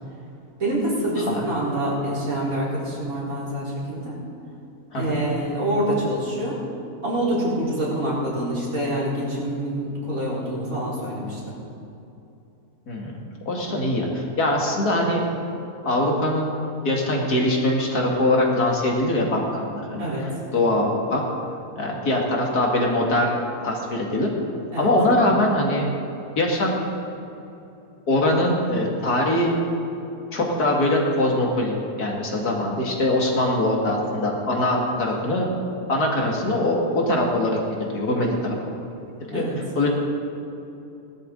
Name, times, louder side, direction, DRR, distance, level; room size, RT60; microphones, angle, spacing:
voice 1, 0.6-4.2 4.9-6.6 7.0-11.5 20.0-20.2 24.7-24.9 39.3-39.6, right 1 dB, 60° right, -7 dB, 4.4 m, -26 dB
voice 2, 13.5-15.2 15.8-16.5 16.8-21.2 21.8-23.3 23.6-24.3 24.8-25.9 26.4-26.8 28.1-29.6 30.3-35.5 35.9-38.6 39.3-39.9, left 1 dB, 80° left, -1 dB, 2.7 m, -22 dB
19.5 x 12.5 x 3.9 m, 2.8 s
omnidirectional pair, 1.6 m